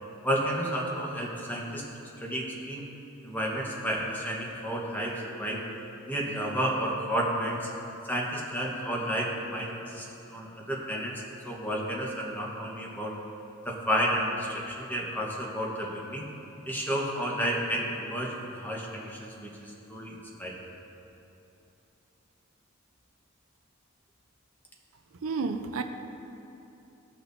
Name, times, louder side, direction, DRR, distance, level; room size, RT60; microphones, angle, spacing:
voice 1, 0.2-1.8 2.2-2.9 3.2-5.6 6.1-7.7 8.1-11.1 11.4-13.1 13.6-16.3 16.7-20.5, equal, 10° left, -2 dB, 1.1 m, -31 dB
voice 2, 25.2-25.8, right 4 dB, 80° right, 7 dB, 0.5 m, -30 dB
15.5 x 5.9 x 2.6 m, 2.9 s
head